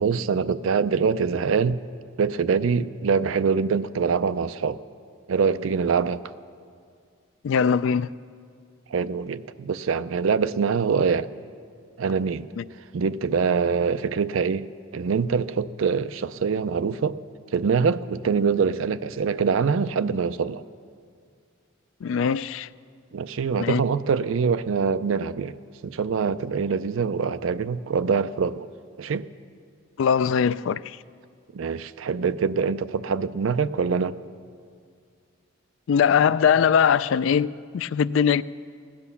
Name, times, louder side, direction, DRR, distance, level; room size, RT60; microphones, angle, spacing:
voice 1, 0.0-1.8 2.2-4.8 5.3-6.2 8.9-11.3 12.0-12.5 12.9-17.2 17.5-20.6 23.1-25.5 25.8-28.7 29.0-29.3 31.5-34.2, right 5 dB, 75° right, 13 dB, 0.4 m, -24 dB
voice 2, 7.4-8.1 12.6-12.7 22.0-22.7 23.6-23.8 30.0-31.0 35.9-37.5 37.7-38.4, left 7 dB, 70° left, 17 dB, 0.3 m, -21 dB
16.5 x 10.5 x 7.0 m, 2.2 s
head